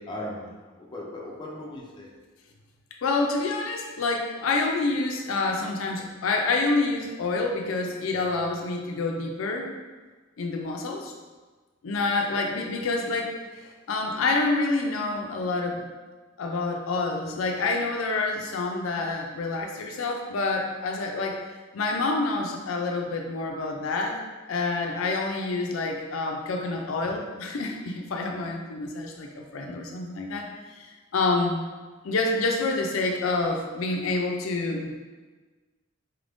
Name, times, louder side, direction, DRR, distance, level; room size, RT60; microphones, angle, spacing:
voice 1, 0.0-2.1, left 1 dB, 20° left, -3 dB, 0.5 m, -38 dB
voice 2, 3.0-9.7 10.4-11.1 11.8-15.9 16.4-21.4 21.7-24.2 24.5-30.4 30.7-30.9 31.1-31.6 32.0-34.9, left 3 dB, 75° left, 2 dB, 0.4 m, -27 dB
4.3 x 2.5 x 3.4 m, 1.3 s
head